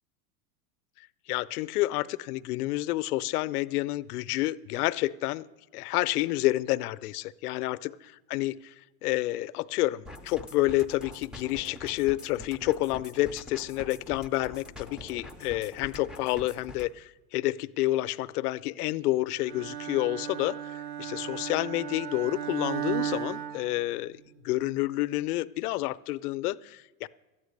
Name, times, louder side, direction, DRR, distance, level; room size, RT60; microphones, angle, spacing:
voice 1, 1.3-5.4 5.7-7.8 8.3-8.7 9.0-27.1, left 17 dB, 75° left, 16 dB, 0.6 m, -29 dB
sound 1, 10.0-16.9, left 2 dB, ahead, 0.4 m, -45 dB
Bowed string instrument, 19.4-24.4, right 10 dB, 45° right, 0.8 m, -36 dB
12.5 x 8.9 x 6.5 m, 1.1 s
hypercardioid pair, 110°, 46 cm